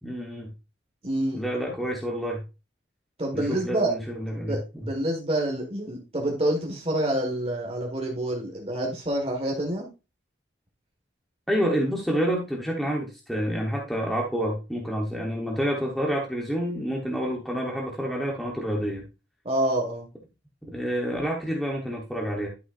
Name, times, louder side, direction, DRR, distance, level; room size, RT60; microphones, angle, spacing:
voice 1, 0.0-0.5 1.3-2.4 3.3-4.9 11.5-19.0 20.6-22.5, equal, ahead, -2 dB, 1.2 m, -28 dB
voice 2, 1.0-1.4 3.2-3.9 4.5-9.9 19.4-20.0, right 1 dB, 30° right, 0 dB, 1.7 m, -27 dB
11.5 x 5.6 x 2.6 m, 0.29 s
head